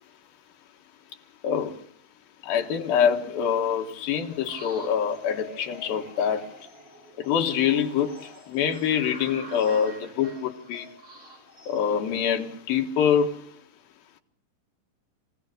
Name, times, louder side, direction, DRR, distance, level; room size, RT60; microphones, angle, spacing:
voice 1, 1.4-1.7 2.4-6.5 7.2-10.9 11.7-13.3, left 8 dB, 85° left, 3.3 m, -25 dB
sound 1, 4.3-12.7, right 1 dB, 40° right, 6.3 m, -47 dB
24.5 x 16.5 x 6.6 m
omnidirectional pair, 4.2 m